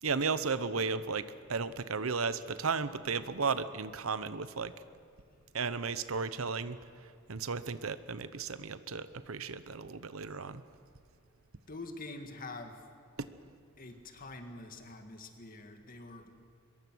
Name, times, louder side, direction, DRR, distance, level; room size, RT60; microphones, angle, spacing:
voice 1, 0.0-4.7 5.5-10.6, right 5 dB, 85° right, 14 dB, 0.9 m, -34 dB
voice 2, 11.7-12.9 13.8-16.4, left 2 dB, 45° left, 6 dB, 2.0 m, -45 dB
24.0 x 22.0 x 6.3 m, 2.4 s
head